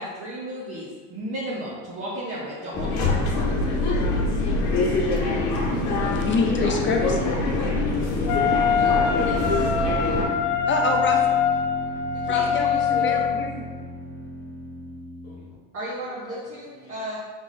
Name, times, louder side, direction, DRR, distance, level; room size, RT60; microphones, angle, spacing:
voice 1, 0.0-3.2 6.6-6.8 8.6-9.6 12.1-13.3 15.7-17.2, equal, 35° right, -6 dB, 0.9 m, -34 dB
sound 1, 2.7-10.3, left 2 dB, 50° left, 1.0 m, -24 dB
voice 2, 6.2-7.2 7.6-7.7 10.7-11.2 12.3-13.7, left 4 dB, 30° left, 3 dB, 0.7 m, -26 dB
Wind instrument woodwind instrument, 8.3-13.5, left 7 dB, 70° left, 0.6 m, -23 dB
sound 2, 9.2-15.4, equal, 80° right, 1.1 m, -36 dB
voice 3, 11.7-12.0 15.2-15.4 16.0-16.4 16.7-16.9, left 2 dB, 85° left, -3 dB, 1.1 m, -52 dB
4.7 x 3.7 x 2.6 m, 1.5 s
supercardioid pair, 95°, 37 cm